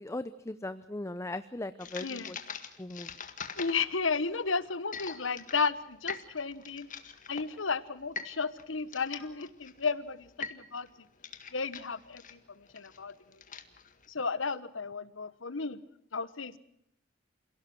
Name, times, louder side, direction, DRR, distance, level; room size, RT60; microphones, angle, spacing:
voice 1, 0.0-2.4 2.8-3.1, left 2 dB, 15° left, 12 dB, 0.7 m, -38 dB
sound 1, 1.8-14.1, left 6 dB, 45° left, 1.9 m, -44 dB
voice 2, 2.0-2.3 3.6-6.9 7.3-10.9 11.5-13.1 14.1-15.8 16.1-16.6, left 4 dB, 90° left, 15 dB, 1.3 m, -33 dB
28.0 x 17.5 x 6.2 m, 0.77 s
head